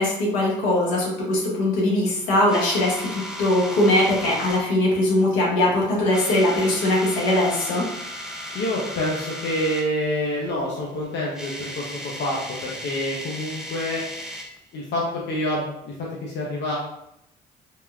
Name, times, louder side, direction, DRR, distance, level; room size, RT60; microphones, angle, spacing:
voice 1, 0.0-7.8, left 1 dB, 85° left, -4 dB, 0.9 m, -21 dB
sound 1, 2.5-4.6 5.3-5.7 6.0-9.9 11.0-11.1 11.2-14.6, equal, 5° right, 0.5 m, -36 dB
voice 2, 8.5-14.0 14.7-16.8, left 1 dB, 65° left, -4 dB, 0.7 m, -27 dB
3.6 x 2.1 x 2.4 m, 0.80 s
hypercardioid pair, 55°, 20 cm